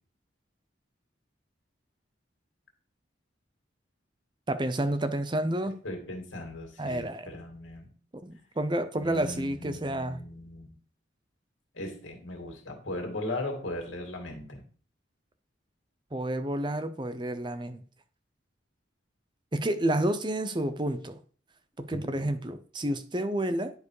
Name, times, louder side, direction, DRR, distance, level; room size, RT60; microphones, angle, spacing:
voice 1, 4.5-5.8 6.8-7.3 8.1-10.2 16.1-17.8 19.5-21.2 21.8-23.7, right 1 dB, 25° right, 0.7 m, -30 dB
voice 2, 5.8-7.9 8.9-10.8 11.7-14.6 21.9-22.3, left 1 dB, 90° left, 2.5 m, -38 dB
11.0 x 4.8 x 4.9 m
head